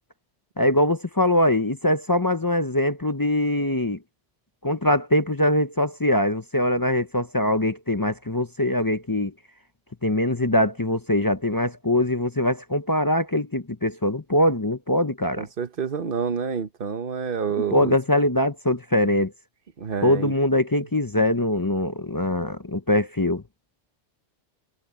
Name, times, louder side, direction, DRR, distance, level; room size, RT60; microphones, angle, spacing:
voice 1, 0.6-4.0 4.6-9.3 10.0-15.5 17.7-19.3 20.0-23.4, left 1 dB, 20° left, 0.6 m, -22 dB
voice 2, 15.4-18.0 19.8-20.3, right 6 dB, 50° right, 1.2 m, -28 dB
omnidirectional pair, 1.3 m